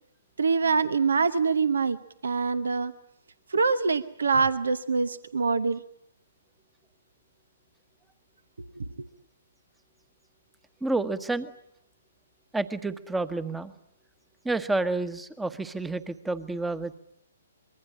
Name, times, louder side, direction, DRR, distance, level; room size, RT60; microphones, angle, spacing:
voice 1, 0.4-2.0 2.2-2.9 3.5-5.8 8.6-8.8, right 4 dB, 70° right, 14 dB, 1.0 m, -25 dB
voice 2, 10.8-11.5 12.5-13.7 14.4-17.0, right 2 dB, 5° right, 14 dB, 1.2 m, -29 dB
25.0 x 22.5 x 8.8 m, 0.75 s
figure-of-eight pair, 120°, 0 cm